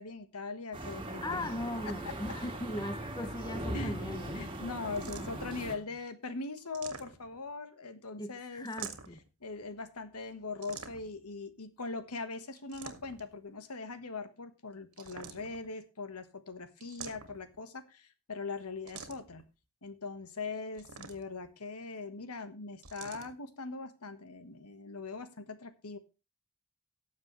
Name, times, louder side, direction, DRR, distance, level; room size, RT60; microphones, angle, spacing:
voice 1, 0.0-1.5 1.8-2.1 3.7-3.9 4.3-8.7 9.4-19.5 19.8-26.0, left 3 dB, 90° left, 1.4 m, -41 dB
sound 1, 0.7-5.8, right 1 dB, 20° right, 2.0 m, -39 dB
voice 2, 1.2-4.5 8.2-9.2, left 1 dB, 20° left, 0.7 m, -39 dB
sound 2, 5.0-5.5 6.6-7.5 8.6-9.3 10.6-11.3 12.6-13.3 14.9-15.7 16.8-17.6 18.9-19.4 20.7-21.5 22.8-23.3, right 6 dB, 85° right, 2.1 m, -47 dB
18.0 x 7.4 x 3.2 m
head